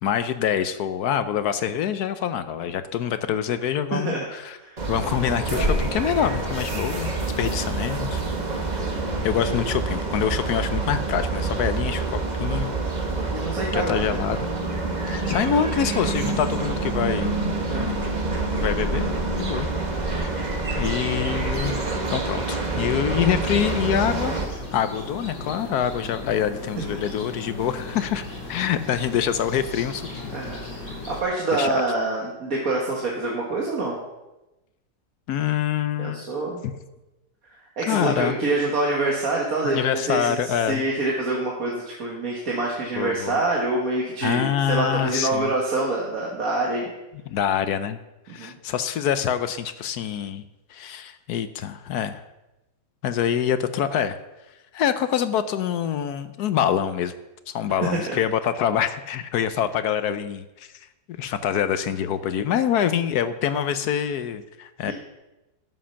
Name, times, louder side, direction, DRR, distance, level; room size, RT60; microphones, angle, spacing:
voice 1, 0.0-4.6 4.9-8.2 9.2-12.7 13.7-14.5 15.1-17.3 17.7-18.0 18.6-19.1 19.4-19.7 20.2-20.5 20.7-24.3 24.7-28.2 28.5-30.4 31.5-31.8 35.3-36.2 36.6-36.7 37.9-38.4 39.6-40.8 43.0-43.4 44.2-45.5 47.3-48.0 48.3-50.4 50.7-52.2 53.0-54.2 54.7-57.1 57.5-60.7 61.1-64.9, left 9 dB, 70° left, 12 dB, 1.1 m, -25 dB
voice 2, 3.9-4.3 4.5-4.9 8.7-8.9 9.4-9.7 13.3-14.2 17.7-18.0 30.3-34.0 36.0-36.6 37.8-46.9 48.4-48.5 57.9-58.2 64.9-65.0, right 2 dB, 55° right, -2 dB, 1.9 m, -26 dB
sound 1, 4.8-24.5, right 3 dB, 25° right, 1.3 m, -27 dB
sound 2, 22.7-31.2, left 2 dB, 90° left, 4.5 m, -37 dB
11.5 x 7.5 x 5.8 m, 0.99 s
omnidirectional pair, 1.9 m